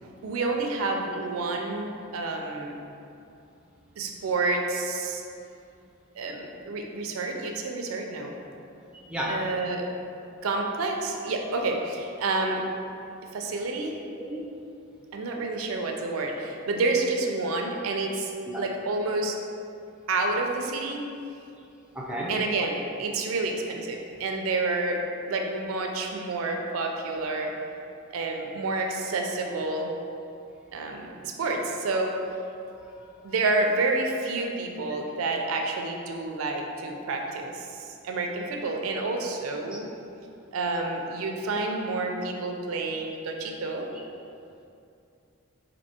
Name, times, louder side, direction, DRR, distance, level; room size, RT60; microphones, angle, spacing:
voice 1, 0.0-2.8 4.0-5.2 6.2-8.3 9.3-9.9 10.4-12.6 13.3-14.0 15.1-18.3 18.6-19.4 20.1-21.0 22.3-25.0 25.3-27.5 28.1-29.9 30.7-32.1 33.2-39.9 40.5-43.9, right 3 dB, 90° right, 2 dB, 0.4 m, -29 dB
voice 2, 8.9-9.7 14.2-14.4 18.5-18.7 21.9-22.4 33.0-33.1, equal, 5° right, -4 dB, 0.4 m, -33 dB
4.3 x 2.6 x 2.8 m, 2.6 s
head